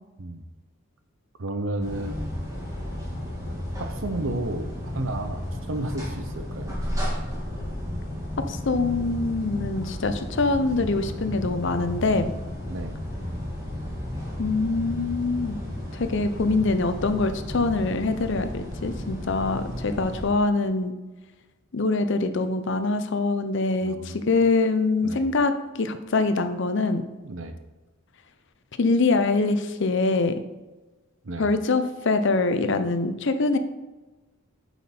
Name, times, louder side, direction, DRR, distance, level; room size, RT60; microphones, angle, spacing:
voice 1, 1.4-2.2 3.8-6.8 12.6-13.0 23.8-24.3 25.0-25.3 27.2-27.6 31.2-31.5, right 2 dB, 60° right, 8 dB, 0.7 m, -32 dB
sound 1, 1.8-20.3, left 1 dB, 15° right, 1.8 m, -33 dB
voice 2, 8.5-12.3 14.4-15.6 15.9-20.9 21.7-25.5 25.8-27.1 28.8-30.4 31.4-33.6, left 3 dB, 55° left, 9 dB, 0.6 m, -24 dB
7.3 x 5.8 x 4.4 m, 1.2 s
head